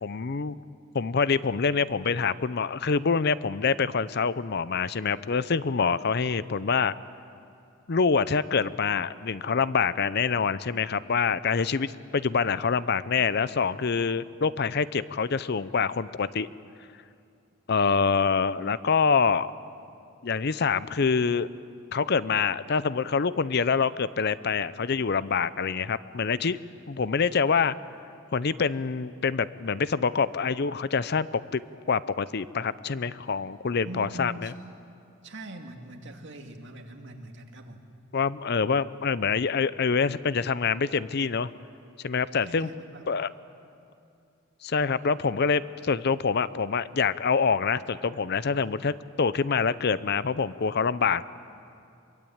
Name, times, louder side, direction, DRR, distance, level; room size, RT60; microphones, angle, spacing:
voice 1, 0.0-0.6 0.9-6.9 7.9-16.5 17.7-19.5 20.2-21.5 21.9-26.6 26.9-27.7 28.3-31.6 31.9-34.5 38.1-41.5 42.0-42.7 43.1-43.3 44.6-51.2, left 5 dB, 55° left, 16 dB, 0.6 m, -26 dB
voice 2, 33.8-34.5 35.2-37.9 42.4-43.1, right 2 dB, 60° right, 3 dB, 2.3 m, -42 dB
24.5 x 23.0 x 8.8 m, 2.5 s
head